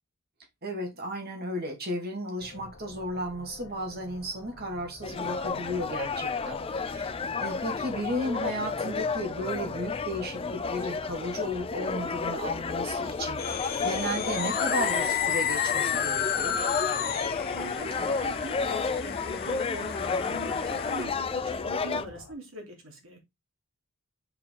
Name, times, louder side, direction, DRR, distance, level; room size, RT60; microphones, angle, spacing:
voice 1, 0.6-16.6, equal, 50° right, 2.1 m, -34 dB
sound 1, 2.4-22.3, left 2 dB, 80° left, 1.1 m, -48 dB
sound 2, 5.0-22.1, left 4 dB, 25° left, 0.4 m, -32 dB
sound 3, 13.4-21.0, left 8 dB, 45° left, 0.8 m, -31 dB
voice 2, 17.5-23.2, right 1 dB, 70° right, 3.0 m, -42 dB
5.8 x 5.0 x 3.8 m
head